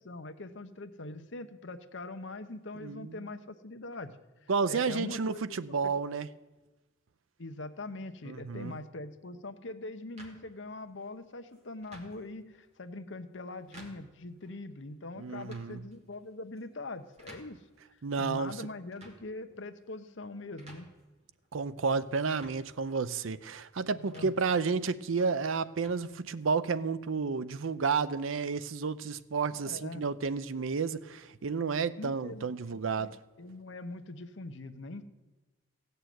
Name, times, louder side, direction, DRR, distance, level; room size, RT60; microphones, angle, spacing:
voice 1, 0.0-4.2 4.7-5.9 7.4-17.6 18.2-20.9 23.9-24.3 29.6-30.0 32.0-33.1 33.4-35.0, left 2 dB, 65° left, 0.9 m, -42 dB
voice 2, 2.8-3.3 4.5-6.3 8.2-8.8 15.2-15.8 18.0-18.6 21.5-33.2, right 5 dB, 85° right, 0.6 m, -31 dB
sound 1, 10.2-26.8, right 1 dB, 35° right, 2.4 m, -58 dB
16.0 x 6.8 x 9.3 m
head